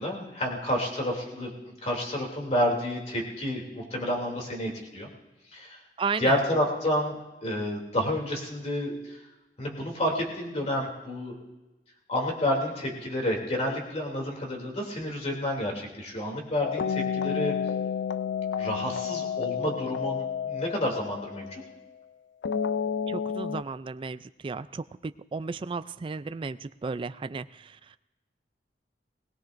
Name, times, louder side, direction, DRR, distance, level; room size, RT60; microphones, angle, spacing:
voice 1, 0.0-5.1 5.5-5.8 6.2-7.2 7.4-9.2 9.6-11.4 12.1-17.6 18.6-21.6, left 1 dB, 40° left, 0 dB, 2.9 m, -30 dB
voice 2, 6.0-6.4 23.1-27.8, right 4 dB, 30° right, 13 dB, 0.3 m, -34 dB
sound 1, 16.6-21.7 22.4-23.6, left 7 dB, 80° left, 0.4 m, -30 dB
20.5 x 18.0 x 2.6 m, 1.1 s
head